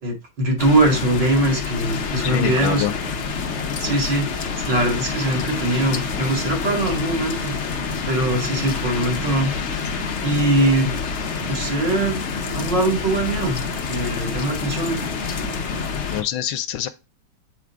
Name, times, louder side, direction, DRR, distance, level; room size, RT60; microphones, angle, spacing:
voice 1, 0.0-2.9 3.8-7.5 8.1-9.5 10.0-10.9 11.5-12.2 12.5-15.0, right 1 dB, 60° right, 2.9 m, -22 dB
sound 1, 0.6-16.2, left 6 dB, 55° left, 0.8 m, -28 dB
sound 2, 1.8-16.1, right 5 dB, 85° right, 4.0 m, -37 dB
voice 2, 2.2-2.9 16.1-16.9, left 11 dB, 80° left, 1.4 m, -25 dB
8.1 x 3.7 x 4.7 m
omnidirectional pair, 2.2 m